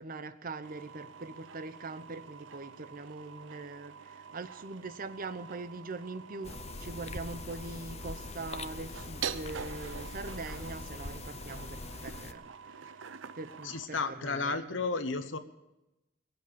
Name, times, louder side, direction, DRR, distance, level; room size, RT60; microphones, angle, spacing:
voice 1, 0.0-13.1 13.3-14.8, right 3 dB, 45° right, 0.8 m, -42 dB
sound 1, 0.6-13.9, right 7 dB, 80° right, 0.7 m, -46 dB
sound 2, 6.4-12.3, left 3 dB, 35° left, 0.6 m, -43 dB
voice 2, 13.6-15.4, left 4 dB, 75° left, 1.2 m, -33 dB
21.5 x 8.0 x 6.8 m
head